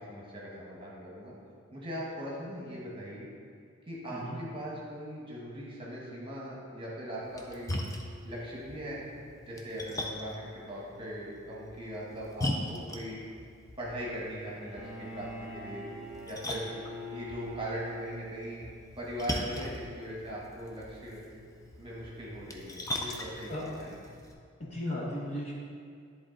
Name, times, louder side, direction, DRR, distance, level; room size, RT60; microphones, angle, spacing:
voice 1, 0.1-1.3 1.7-3.3 3.9-7.7 8.2-9.0 9.4-13.2 13.8-15.9 16.3-16.7 17.1-18.7 19.0-21.2 21.8-23.9, equal, 25° right, -5 dB, 1.2 m, -40 dB
Splash splatter, 7.2-24.3, left 1 dB, 15° left, 0.4 m, -41 dB
Bowed string instrument, 14.6-18.7, equal, ahead, 1.1 m, -43 dB
voice 2, 24.6-25.5, left 1 dB, 30° left, -4 dB, 0.9 m, -36 dB
10.0 x 3.7 x 3.9 m, 2.2 s
head